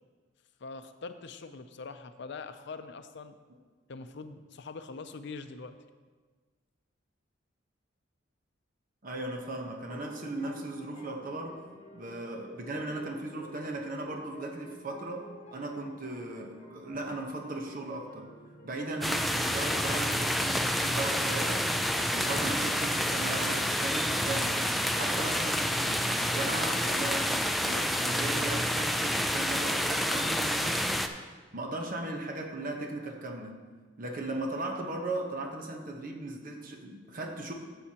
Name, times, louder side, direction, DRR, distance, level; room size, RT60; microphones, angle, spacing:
voice 1, 0.6-3.3 3.9-5.8, left 4 dB, 60° left, 9 dB, 0.6 m, -43 dB
voice 2, 9.0-11.6 11.9-18.3 18.6-21.7 22.0-24.6 25.0-31.0 31.5-33.6 34.0-37.5, right 2 dB, 45° right, 2 dB, 1.1 m, -37 dB
sound 1, 9.9-23.8, equal, 40° left, 1.1 m, -51 dB
sound 2, 19.0-31.1, equal, ahead, 0.3 m, -29 dB
12.5 x 7.9 x 2.9 m, 1.4 s
head